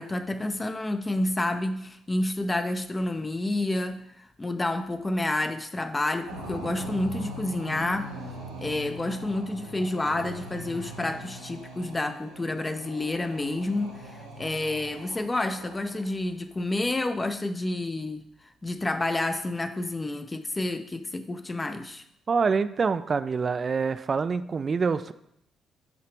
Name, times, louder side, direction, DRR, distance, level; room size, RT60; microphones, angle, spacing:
voice 1, 0.0-8.2 8.6-18.3 18.6-22.0, left 2 dB, 25° left, 8 dB, 0.5 m, -29 dB
sound 1, 6.3-16.2, right 1 dB, 90° right, 0.9 m, -41 dB
voice 2, 22.3-25.1, right 5 dB, 40° right, 13 dB, 0.3 m, -26 dB
7.9 x 2.8 x 4.5 m, 0.77 s
hypercardioid pair, 45°, 0 cm